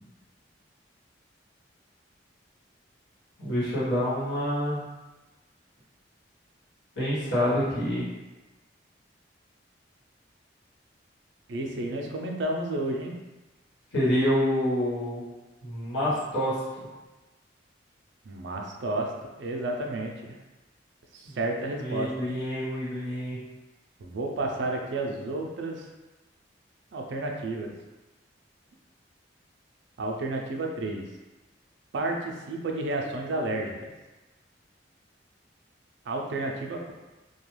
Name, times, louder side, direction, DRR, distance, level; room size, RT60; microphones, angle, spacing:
voice 1, 3.4-4.8 6.9-8.1 13.9-15.2 15.6-16.6 21.2-21.4 21.8-23.4, equal, 65° left, -10 dB, 1.2 m, -27 dB
voice 2, 11.5-13.1 18.2-20.4 21.1-22.3 24.0-25.9 26.9-27.7 30.0-31.0 31.9-33.9 36.1-36.9, right 2 dB, 70° right, 1 dB, 0.4 m, -31 dB
2.3 x 2.2 x 3.1 m, 1.1 s
head